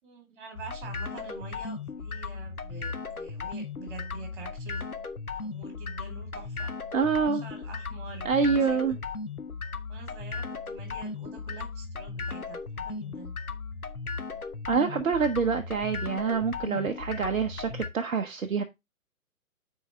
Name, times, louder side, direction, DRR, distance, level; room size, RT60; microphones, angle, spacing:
voice 1, 0.0-4.8 5.4-6.7 7.3-8.8 9.9-13.3, right 4 dB, 35° right, 4.0 m, -46 dB
sound 1, 0.5-17.9, left 4 dB, 85° left, 1.1 m, -36 dB
voice 2, 6.9-7.4 8.2-9.0 14.7-18.6, right 5 dB, 65° right, 1.0 m, -26 dB
9.9 x 4.9 x 3.2 m
figure-of-eight pair, 135°, 42 cm